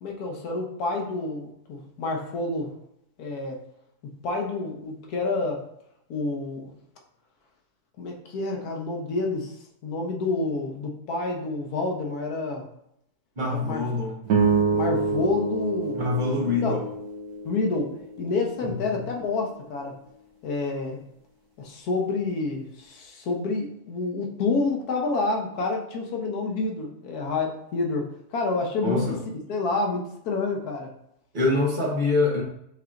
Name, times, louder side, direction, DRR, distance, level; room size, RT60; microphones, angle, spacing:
voice 1, 0.0-2.7 3.2-3.6 4.2-5.7 6.1-6.8 8.0-9.5 9.8-12.7 13.5-13.8 14.4-16.0 16.5-16.8 17.4-20.0 20.4-21.0 21.6-29.2 29.5-30.9, left 3 dB, 80° left, 1 dB, 1.4 m, -28 dB
voice 2, 13.4-14.1 16.0-16.8 18.7-19.0 28.8-29.2 31.3-32.4, left 3 dB, 35° right, -1 dB, 1.0 m, -25 dB
sound 1, 14.3-18.8, right 4 dB, 90° right, 1.2 m, -27 dB
6.7 x 2.9 x 2.5 m, 0.76 s
omnidirectional pair, 1.6 m